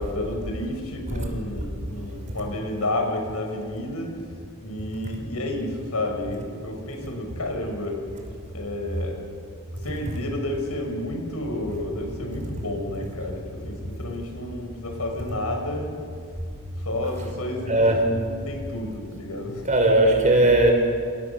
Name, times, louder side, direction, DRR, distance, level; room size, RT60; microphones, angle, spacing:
voice 1, 0.0-4.1 4.6-8.0 8.5-9.3 9.8-15.9 16.8-17.8 18.2-19.6, left 1 dB, 80° left, 6.3 m, -31 dB
voice 2, 17.7-18.2 19.6-20.7, right 1 dB, 35° right, 5.5 m, -19 dB
29.5 x 27.5 x 7.3 m
head